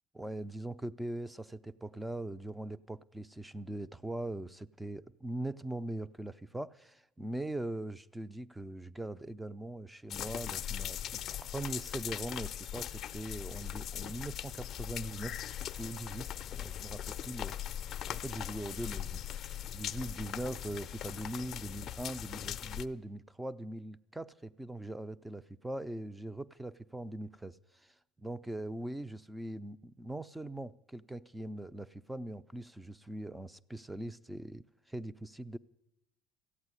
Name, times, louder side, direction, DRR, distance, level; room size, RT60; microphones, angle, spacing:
voice 1, 0.1-15.4 15.8-17.6 18.1-35.6, right 1 dB, 5° right, 0.4 m, -41 dB
sound 1, 10.1-22.9, left 11 dB, 45° left, 0.5 m, -40 dB
14.5 x 8.8 x 9.8 m
cardioid pair, 135°, 0 cm